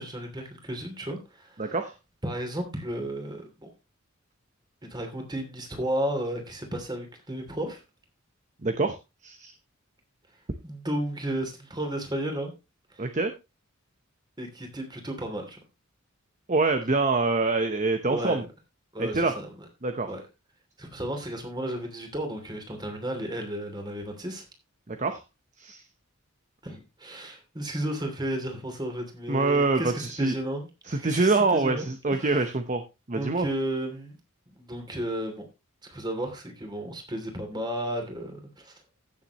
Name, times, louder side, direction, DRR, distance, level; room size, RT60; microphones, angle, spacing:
voice 1, 0.0-1.7 2.2-3.7 4.8-7.8 10.6-12.5 12.9-13.1 14.4-15.6 18.1-18.5 18.9-19.5 20.0-20.2 20.8-24.4 26.6-32.5 33.1-34.2 34.5-35.5 35.9-38.7, right 1 dB, 20° right, 4 dB, 2.9 m, -33 dB
voice 2, 1.6-1.9 8.6-9.0 9.2-9.5 13.0-13.3 16.5-18.4 19.0-19.3 19.8-20.1 24.9-25.2 25.6-25.8 29.3-30.3 30.9-32.8 33.1-33.5, right 3 dB, 35° right, 7 dB, 0.9 m, -25 dB
15.5 x 7.3 x 3.0 m, 0.25 s
head